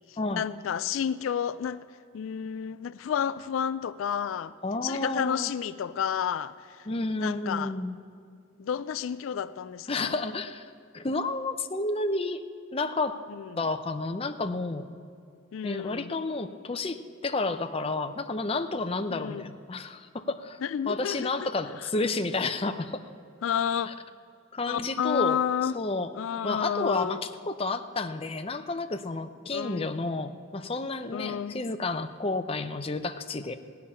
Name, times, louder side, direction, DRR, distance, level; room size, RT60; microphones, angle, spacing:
voice 1, 0.4-1.8 2.1-4.5 4.8-6.5 7.2-7.7 8.6-10.1 13.4-13.5 15.5-16.1 19.1-19.4 20.6-21.3 23.4-23.9 24.7-25.7 26.2-27.2 29.5-29.9 31.1-31.6, left 8 dB, 80° left, 15 dB, 0.3 m, -30 dB
voice 2, 4.6-5.5 6.9-8.0 9.9-12.4 12.7-13.2 13.6-15.0 15.6-23.1 23.9-24.0 24.5-25.4 25.7-26.1 26.4-33.5, left 3 dB, 30° left, 8 dB, 0.6 m, -31 dB
17.0 x 5.8 x 9.8 m, 2.5 s
head